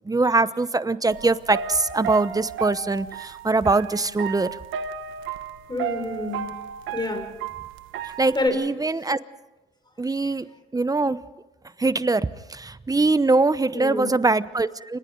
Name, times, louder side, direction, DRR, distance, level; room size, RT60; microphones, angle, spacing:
voice 1, 0.1-4.5 8.2-9.2 10.0-10.5 10.7-11.2 11.8-15.0, right 3 dB, 20° right, 15 dB, 0.9 m, -22 dB
sound 1, 1.1-8.5, right 8 dB, 85° right, 1.1 m, -34 dB
voice 2, 5.7-6.6 6.9-7.3 8.3-8.7 10.2-10.3 13.7-14.1, left 2 dB, 20° left, 6 dB, 5.3 m, -27 dB
29.0 x 25.0 x 3.9 m, 1.1 s
cardioid pair, 90°, 20 cm